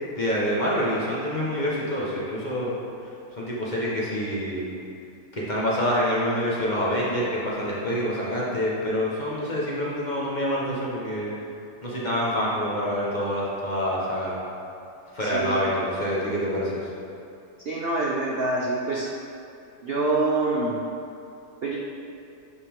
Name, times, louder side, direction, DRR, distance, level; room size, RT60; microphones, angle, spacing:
voice 1, 0.2-2.7 3.4-4.7 5.3-11.3 11.8-14.4 15.1-16.9, equal, 30° left, -6 dB, 1.4 m, -26 dB
voice 2, 17.7-19.1 19.8-20.8 21.6-21.8, right 2 dB, 50° right, -3 dB, 0.7 m, -25 dB
11.5 x 5.5 x 3.7 m, 2.6 s
omnidirectional pair, 1.8 m